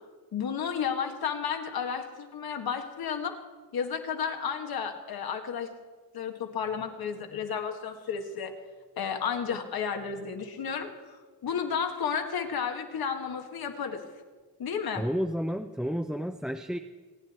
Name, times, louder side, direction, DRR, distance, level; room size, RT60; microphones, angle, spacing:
voice 1, 0.3-3.3 3.7-5.7 6.1-8.5 9.0-14.0 14.6-15.0, left 7 dB, 80° left, 5 dB, 1.7 m, -32 dB
voice 2, 14.9-16.8, equal, ahead, 5 dB, 0.5 m, -31 dB
26.0 x 9.6 x 4.3 m, 1.3 s
wide cardioid pair, 125°, 36 cm